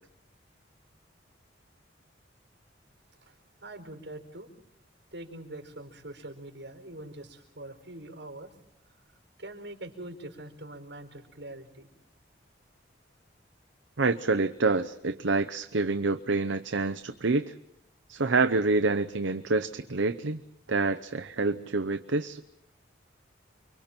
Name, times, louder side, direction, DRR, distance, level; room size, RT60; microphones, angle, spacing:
voice 1, 3.6-4.5 5.1-8.5 9.4-11.9, right 1 dB, 65° right, 4 dB, 4.6 m, -43 dB
voice 2, 14.0-17.5 18.1-20.4 20.7-22.4, right 3 dB, 80° right, 8 dB, 0.8 m, -27 dB
30.0 x 23.5 x 4.5 m, 0.85 s
head